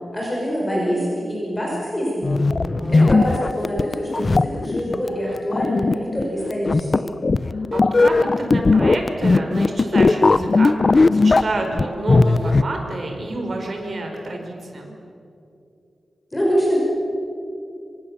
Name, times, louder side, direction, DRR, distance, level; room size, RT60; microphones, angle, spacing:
voice 1, 0.1-2.5 2.9-7.1 16.3-16.8, equal, 15° left, -4 dB, 5.5 m, -25 dB
sound 1, 2.2-12.6, left 3 dB, 35° left, 0.6 m, -18 dB
voice 2, 2.8-3.3 7.5-15.0, right 2 dB, 45° right, 2 dB, 4.9 m, -29 dB
27.0 x 26.0 x 7.3 m, 2.6 s
wide cardioid pair, 155°, 0 cm